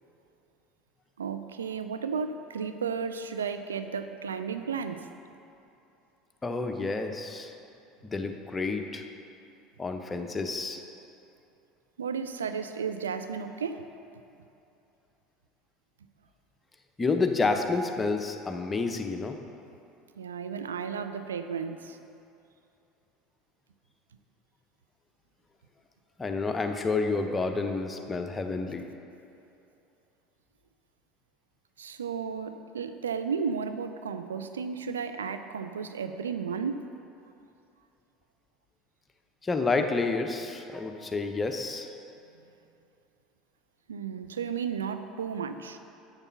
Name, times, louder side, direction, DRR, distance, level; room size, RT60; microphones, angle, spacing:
voice 1, 1.2-5.1 12.0-13.8 20.2-22.0 31.8-36.8 43.9-45.8, right 6 dB, 80° right, 9 dB, 0.4 m, -33 dB
voice 2, 6.4-7.5 8.0-9.0 9.8-10.8 17.0-19.4 26.2-28.8 39.4-41.9, left 3 dB, 20° left, 5 dB, 0.8 m, -29 dB
7.0 x 6.6 x 5.7 m, 2.8 s
figure-of-eight pair, 70°, 0 cm